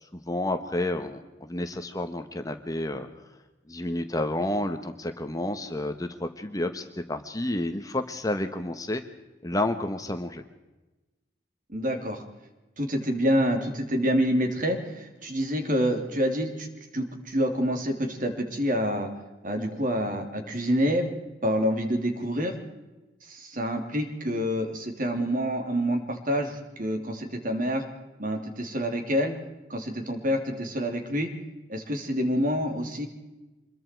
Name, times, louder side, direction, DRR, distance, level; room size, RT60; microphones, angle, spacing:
voice 1, 0.0-3.1 3.7-9.0 9.4-10.4, left 1 dB, 20° left, 7 dB, 1.1 m, -30 dB
voice 2, 11.7-12.2 12.8-16.7 16.9-19.1 19.4-21.1 21.4-22.5 23.3-27.8 28.2-29.3 29.7-31.3 31.7-33.1, equal, 45° right, 4 dB, 3.3 m, -27 dB
26.0 x 22.0 x 4.6 m, 1.1 s
head